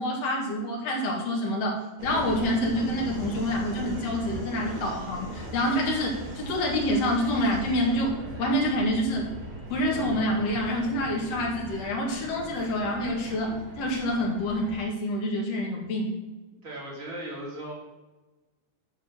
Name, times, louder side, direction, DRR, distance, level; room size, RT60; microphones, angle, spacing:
voice 1, 0.0-8.1 8.4-9.3 9.7-16.1, left 1 dB, 50° left, -1 dB, 2.3 m, -27 dB
Subway metro underground, 2.0-14.8, right 1 dB, 65° right, 3.2 m, -39 dB
voice 2, 16.6-17.7, right 1 dB, 25° right, -5 dB, 2.1 m, -37 dB
9.6 x 4.3 x 6.7 m, 1.2 s
omnidirectional pair, 4.4 m